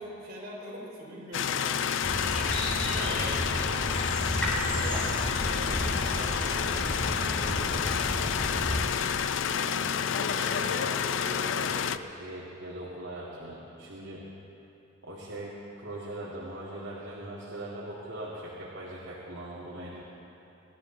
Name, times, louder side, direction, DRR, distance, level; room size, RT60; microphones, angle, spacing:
voice 1, 0.0-1.8 2.8-4.3 4.8-8.4, equal, 50° right, -4 dB, 3.7 m, -43 dB
sound 1, 1.3-12.0, left 7 dB, 65° left, 0.4 m, -29 dB
sound 2, 2.0-8.8, equal, 5° left, 3.7 m, -32 dB
voice 2, 9.5-14.3 15.0-20.0, right 1 dB, 70° right, -6 dB, 2.2 m, -40 dB
26.0 x 12.5 x 3.9 m, 2.9 s
head